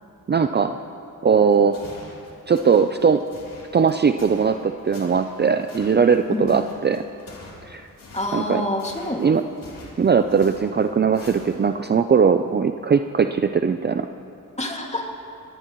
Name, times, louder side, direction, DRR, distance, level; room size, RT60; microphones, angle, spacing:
voice 1, 0.3-0.8 1.2-1.8 2.5-3.2 3.7-7.0 7.6-7.9 8.3-8.6 9.2-9.4 10.0-14.1, right 6 dB, 30° right, 7 dB, 0.5 m, -19 dB
sound 1, 1.5-11.8, left 2 dB, 70° left, 3.5 m, -44 dB
voice 2, 8.1-9.3 14.6-15.1, left 1 dB, 20° left, 0 dB, 2.2 m, -27 dB
24.0 x 18.5 x 3.1 m, 2.6 s
cardioid pair, 90°, 35 cm